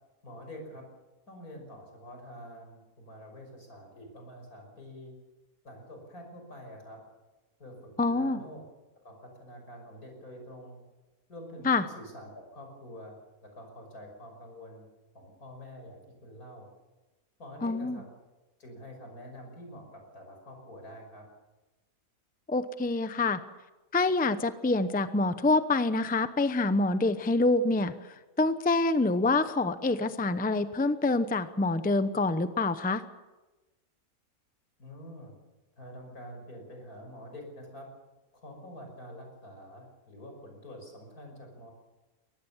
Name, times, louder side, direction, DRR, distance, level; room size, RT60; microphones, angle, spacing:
voice 1, 0.2-0.8 1.3-5.1 5.6-7.0 7.6-8.6 9.0-10.8 11.3-11.7 11.9-13.2 13.4-14.8 15.1-16.7 17.4-18.0 18.6-21.3 34.8-35.3 35.8-37.9 38.3-41.7, equal, 85° left, 3 dB, 6.4 m, -46 dB
voice 2, 8.0-8.4 11.6-11.8 17.6-18.0 22.5-23.4 23.9-33.0, left 3 dB, 10° left, 11 dB, 0.6 m, -26 dB
23.0 x 18.5 x 7.3 m, 1.1 s
omnidirectional pair, 1.5 m